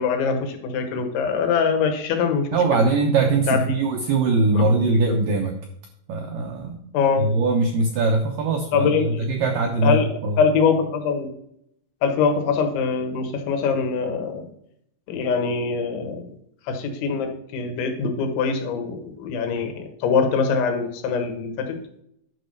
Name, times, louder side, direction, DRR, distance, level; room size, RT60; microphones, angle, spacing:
voice 1, 0.0-2.8 3.5-3.8 4.5-4.7 6.9-7.3 8.7-9.3 9.8-11.3 12.0-14.5 15.1-16.3 16.7-21.8, left 5 dB, 90° left, 4 dB, 3.9 m, -23 dB
voice 2, 2.5-5.5 6.1-6.9 7.2-10.4, right 3 dB, 80° right, 3 dB, 1.9 m, -21 dB
11.0 x 5.4 x 6.5 m, 0.73 s
omnidirectional pair, 5.2 m